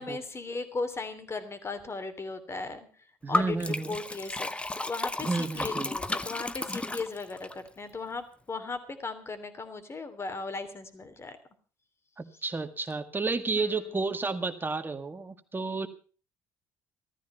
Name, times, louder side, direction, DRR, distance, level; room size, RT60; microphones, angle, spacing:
voice 1, 0.0-2.9 3.3-4.5 4.9-11.4 13.5-14.0, left 3 dB, 30° left, 10 dB, 3.1 m, -37 dB
voice 2, 3.2-4.0 5.2-5.9 12.2-15.9, right 3 dB, 20° right, 9 dB, 1.9 m, -31 dB
Liquid, 3.3-7.5, left 2 dB, 10° left, 0.9 m, -33 dB
15.0 x 14.0 x 5.6 m, 0.39 s
hypercardioid pair, 60°, 9 cm